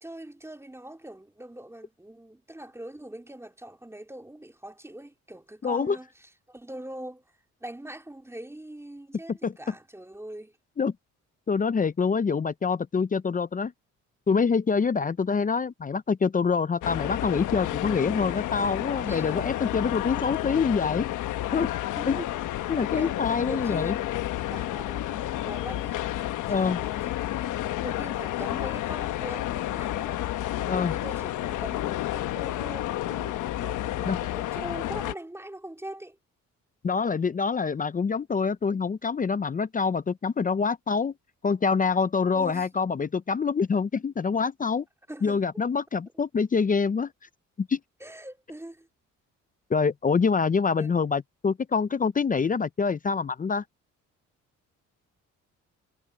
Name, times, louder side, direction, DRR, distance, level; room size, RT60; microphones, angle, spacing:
voice 1, 0.0-6.1 6.5-7.2 7.6-10.5 19.1-19.4 20.1-20.3 22.0-22.2 23.0-23.2 23.5-24.0 24.3-26.0 26.5-27.4 27.8-36.2 42.3-42.7 45.1-45.4 48.0-48.9 50.8-51.0, right 1 dB, 10° right, 3.1 m, -42 dB
voice 2, 5.6-6.0 9.3-9.5 10.8-10.9 11.5-13.7 14.3-21.1 21.5-21.7 22.1-22.2 22.7-24.0 26.5-26.8 30.7-31.0 34.1-34.2 36.8-41.1 41.4-44.8 45.2-47.1 47.6-47.8 49.7-53.6, left 5 dB, 25° left, 0.6 m, -25 dB
sound 1, 16.8-35.1, left 14 dB, 85° left, 1.1 m, -31 dB
cardioid pair, 90°, 30 cm